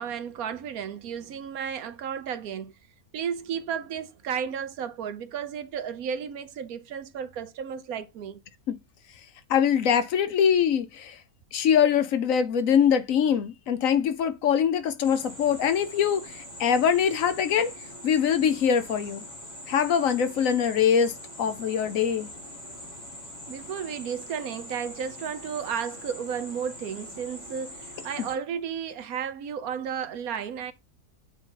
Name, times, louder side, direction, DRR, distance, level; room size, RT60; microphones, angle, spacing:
voice 1, 0.0-2.7 3.1-8.4 23.5-30.7, right 7 dB, 75° right, 1.2 m, -33 dB
voice 2, 9.5-11.2 11.5-17.7 18.0-19.2 19.7-22.3, left 8 dB, 65° left, 1.1 m, -23 dB
sound 1, 15.0-28.4, equal, 25° left, 2.4 m, -43 dB
8.1 x 3.9 x 3.8 m
omnidirectional pair, 1.6 m